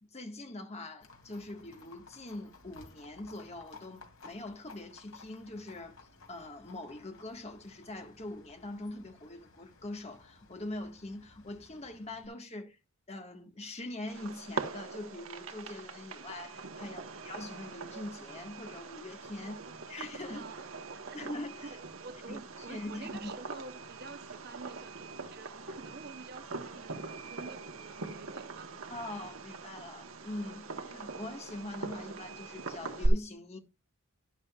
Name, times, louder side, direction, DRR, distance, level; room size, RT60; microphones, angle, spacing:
voice 1, 0.0-6.0 6.3-12.8 13.1-19.6 19.9-20.5 21.1-21.8 22.3-22.4 22.7-23.3 28.9-33.6, left 2 dB, 30° left, 1.6 m, -43 dB
Livestock farm animals working animals, 1.0-12.3, left 3 dB, 75° left, 2.6 m, -57 dB
Fireworks, 14.1-33.1, right 3 dB, 75° right, 1.2 m, -42 dB
voice 2, 16.8-17.2 19.4-19.9 20.3-21.3 21.6-28.7, right 4 dB, 50° right, 0.7 m, -49 dB
11.5 x 11.0 x 2.4 m
head